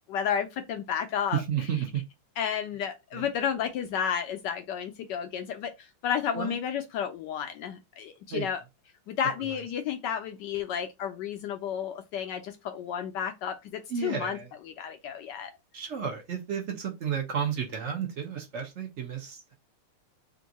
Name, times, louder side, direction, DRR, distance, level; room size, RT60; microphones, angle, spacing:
voice 1, 0.1-1.4 2.4-8.6 9.1-14.4 14.8-15.5, left 8 dB, 80° left, 1.0 m, -32 dB
voice 2, 1.3-2.0 3.1-3.2 6.3-6.5 8.3-8.5 9.4-9.6 13.9-14.5 15.7-19.5, right 8 dB, 85° right, 0.6 m, -32 dB
3.6 x 2.6 x 4.0 m
omnidirectional pair, 2.4 m